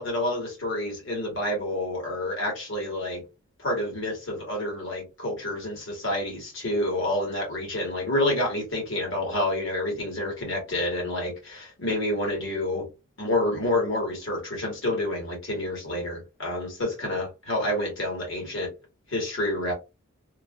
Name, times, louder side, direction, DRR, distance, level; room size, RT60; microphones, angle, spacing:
voice 1, 0.0-3.2 3.6-12.9 13.2-18.7 19.1-19.7, left 1 dB, 60° left, 1.7 m, -28 dB
3.1 x 2.7 x 2.3 m
head